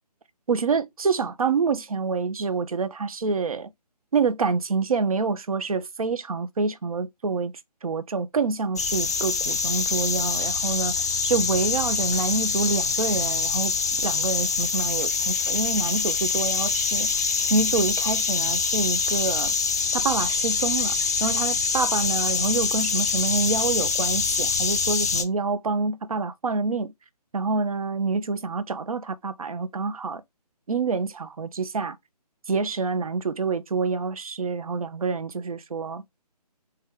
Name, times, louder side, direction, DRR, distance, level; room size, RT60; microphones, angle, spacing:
voice 1, 0.5-3.7 4.1-7.5 7.8-10.9 11.2-17.1 17.5-19.5 19.9-20.9 21.2-26.9 27.3-30.2 30.7-32.0 32.5-36.0, right 4 dB, 55° right, 0.6 m, -27 dB
sound 1, 8.8-25.2, left 5 dB, 25° left, 0.4 m, -25 dB
3.3 x 2.8 x 3.6 m
figure-of-eight pair, 150°, 21 cm